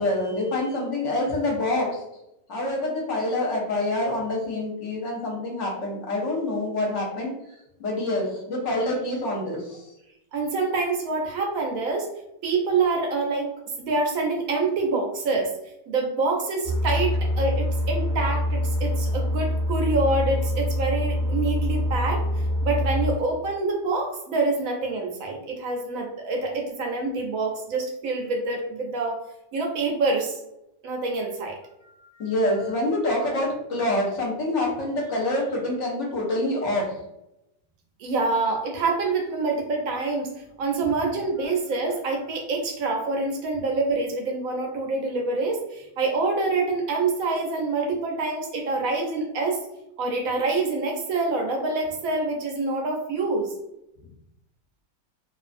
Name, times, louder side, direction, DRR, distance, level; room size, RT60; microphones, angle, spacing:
voice 1, 0.0-2.0 2.5-7.4 7.8-9.9 32.0-37.0, left 1 dB, 55° left, -2 dB, 0.9 m, -26 dB
voice 2, 10.3-12.1 12.4-13.5 13.8-15.6 15.9-22.3 22.6-29.2 29.5-30.4 30.8-31.6 38.0-49.6 50.0-53.5, right 3 dB, 70° right, 1 dB, 0.8 m, -26 dB
sound 1, 16.6-23.1, left 1 dB, 25° right, 0.4 m, -25 dB
2.5 x 2.4 x 2.4 m, 0.86 s
omnidirectional pair, 1.8 m